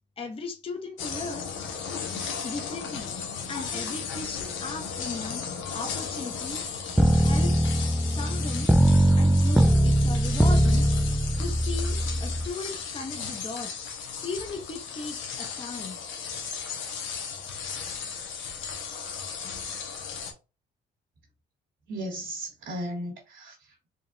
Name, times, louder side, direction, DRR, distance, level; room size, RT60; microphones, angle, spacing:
voice 1, 0.2-1.6 2.4-3.1 3.5-7.6 8.1-8.8 9.2-10.9 11.4-13.9 14.2-16.0, left 3 dB, 30° left, 0.8 m, -37 dB
sound 1, 1.0-20.3, left 6 dB, 85° left, 0.9 m, -36 dB
sound 2, 7.0-12.5, right 1 dB, 5° right, 0.3 m, -21 dB
voice 2, 21.9-23.9, equal, 80° right, 1.5 m, -36 dB
3.8 x 2.4 x 3.7 m
cardioid pair, 85°, 19 cm